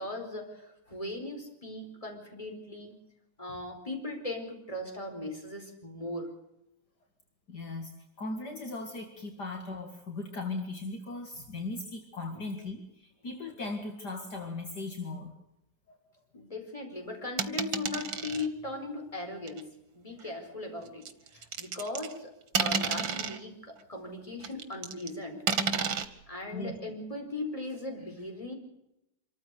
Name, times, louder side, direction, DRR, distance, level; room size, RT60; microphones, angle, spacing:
voice 1, 0.0-2.9 3.4-6.3 12.3-12.4 16.3-22.3 22.6-25.5 26.3-28.5, left 2 dB, 15° left, 4 dB, 4.7 m, -38 dB
voice 2, 7.5-7.9 8.2-15.3 15.9-16.0 26.5-26.7, left 3 dB, 60° left, 4 dB, 2.8 m, -38 dB
sound 1, 17.4-18.5 19.5-19.6 21.1-22.2 22.5-23.4 24.4-25.1 25.5-26.1, right 5 dB, 85° right, 2.3 m, -31 dB
26.0 x 14.5 x 8.3 m, 0.84 s
omnidirectional pair, 2.1 m